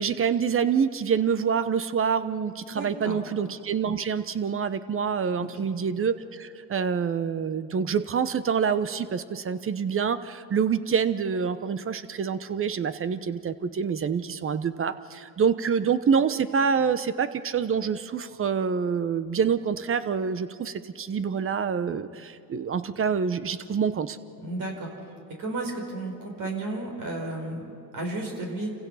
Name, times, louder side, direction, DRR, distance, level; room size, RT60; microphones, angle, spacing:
voice 1, 0.0-24.2, right 6 dB, 25° right, 13 dB, 1.0 m, -26 dB
voice 2, 2.7-3.2 5.4-5.7 24.4-24.9 25.4-28.7, right 2 dB, 45° right, 1 dB, 5.5 m, -33 dB
28.5 x 16.0 x 5.7 m, 2.4 s
supercardioid pair, 90°, 47 cm